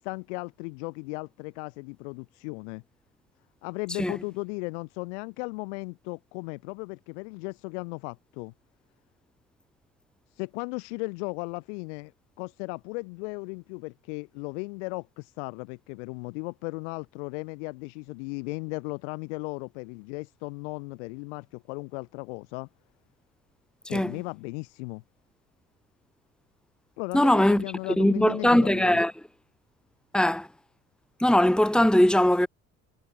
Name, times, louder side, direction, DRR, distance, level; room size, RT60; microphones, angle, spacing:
voice 1, 0.0-2.8 3.6-8.5 10.3-12.1 12.4-22.7 23.9-25.0 27.0-29.0, left 31 dB, 75° left, 4.3 m, -36 dB
voice 2, 27.1-27.6 28.0-29.1 30.1-30.5 31.2-32.5, left 1 dB, ahead, 2.6 m, -20 dB
hypercardioid pair, 55°, 35 cm